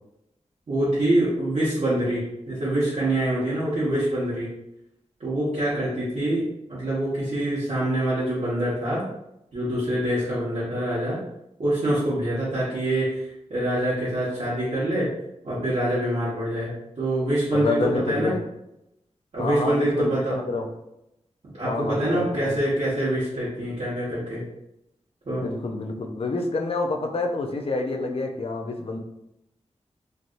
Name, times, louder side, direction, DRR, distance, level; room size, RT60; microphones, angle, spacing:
voice 1, 0.7-4.5 5.2-9.0 9.5-11.2 11.6-15.1 15.4-16.7 17.0-18.3 19.3-20.3 21.6-24.4 25.2-25.5, right 1 dB, 60° right, -11 dB, 1.2 m, -25 dB
voice 2, 17.5-18.4 19.4-20.7 21.6-22.6 25.4-29.0, left 3 dB, 55° left, 3 dB, 0.5 m, -28 dB
3.2 x 2.7 x 2.5 m, 0.85 s
wide cardioid pair, 115°, 12 cm